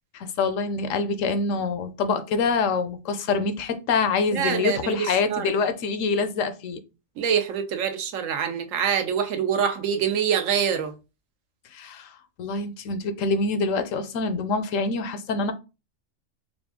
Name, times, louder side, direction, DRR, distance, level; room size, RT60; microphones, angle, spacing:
voice 1, 0.1-6.8 11.7-15.5, left 4 dB, 85° left, 1.0 m, -25 dB
voice 2, 4.3-5.6 7.2-10.9, right 8 dB, 90° right, 1.1 m, -25 dB
4.2 x 2.6 x 3.5 m
omnidirectional pair, 1.3 m